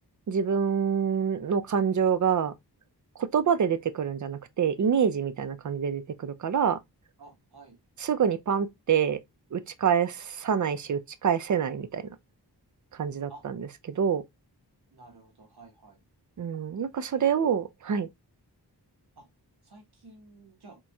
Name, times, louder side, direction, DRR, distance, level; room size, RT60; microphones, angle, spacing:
voice 1, 0.3-2.5 3.2-6.8 8.0-9.2 9.5-12.1 12.9-14.2 16.4-18.1, right 7 dB, 45° right, 0.5 m, -26 dB
voice 2, 7.2-7.8 13.3-13.4 14.9-16.0 19.1-19.3 19.6-20.8, right 3 dB, 65° right, 1.6 m, -51 dB
4.2 x 3.0 x 2.2 m
wide cardioid pair, 55°, 41 cm